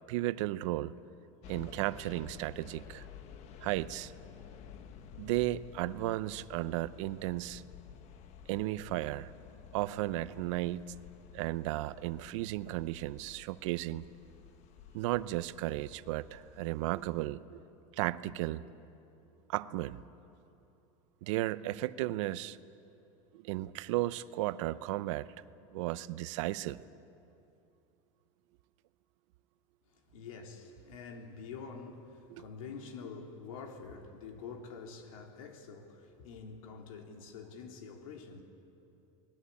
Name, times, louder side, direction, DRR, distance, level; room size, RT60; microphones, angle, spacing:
voice 1, 0.1-0.9 1.5-3.0 3.6-4.1 5.2-7.6 8.5-9.3 9.7-10.8 11.3-14.0 14.9-17.6 18.0-18.6 19.5-20.0 21.2-22.6 23.3-25.3 25.7-26.8, right 16 dB, 65° right, 0.8 m, -34 dB
sound 1, 1.4-17.3, left 8 dB, 40° left, 1.4 m, -53 dB
voice 2, 29.9-38.4, left 5 dB, 85° left, 3.5 m, -47 dB
29.5 x 20.5 x 8.5 m
supercardioid pair, 150°, 17 cm